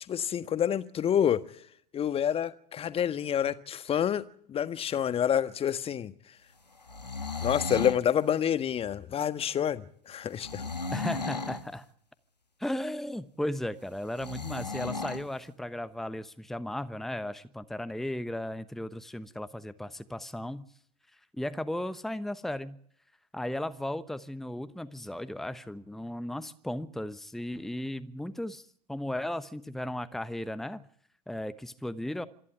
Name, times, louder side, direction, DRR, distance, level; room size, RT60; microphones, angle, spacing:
voice 1, 0.1-1.4 1.9-4.2 4.5-6.1 7.4-10.6, left 9 dB, 30° left, 1.5 m, -28 dB
sound 1, 6.8-8.0 10.4-11.7 14.2-15.3, left 4 dB, 90° left, 1.4 m, -35 dB
voice 2, 10.9-11.8 12.6-20.6 21.3-22.8 23.3-30.9 31.3-32.2, left 1 dB, ahead, 1.1 m, -35 dB
26.5 x 11.0 x 9.0 m
figure-of-eight pair, 80°, 20 cm